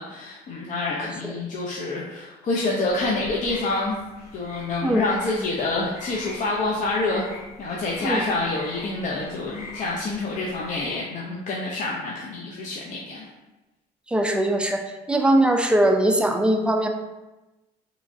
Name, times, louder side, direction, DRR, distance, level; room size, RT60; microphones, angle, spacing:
voice 1, 0.0-4.0 4.3-7.3 7.6-13.3, left 2 dB, 50° left, -3 dB, 0.5 m, -27 dB
sound 1, 2.9-11.0, left 2 dB, 70° left, 0.9 m, -42 dB
voice 2, 14.1-14.8 15.1-16.9, right 1 dB, 5° right, 4 dB, 0.3 m, -20 dB
3.4 x 3.0 x 2.6 m, 1.1 s
cardioid pair, 110°, 17 cm